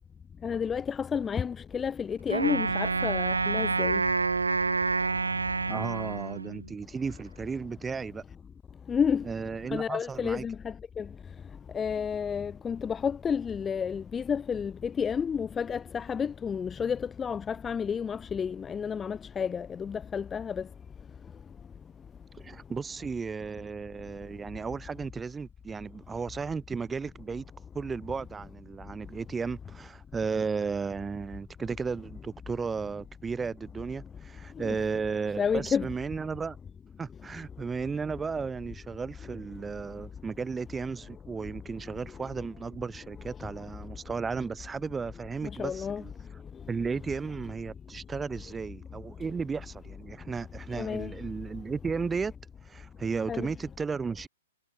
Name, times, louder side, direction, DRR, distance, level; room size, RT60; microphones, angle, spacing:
voice 1, 0.4-4.0 8.9-9.3 9.7-11.1 11.7-20.7 34.6-34.8 35.4-35.9 45.4-46.0 50.7-51.1 53.3-53.5, left 7 dB, 15° left, 1.2 m, -31 dB
Wind instrument woodwind instrument, 2.3-6.7, right 4 dB, 75° right, 1.8 m, -28 dB
voice 2, 5.7-8.2 9.2-10.4 22.3-27.5 27.7-36.6 37.0-46.1 46.7-52.3 52.6-54.3, right 5 dB, 10° right, 2.9 m, -34 dB
figure-of-eight pair, 115°, 0 cm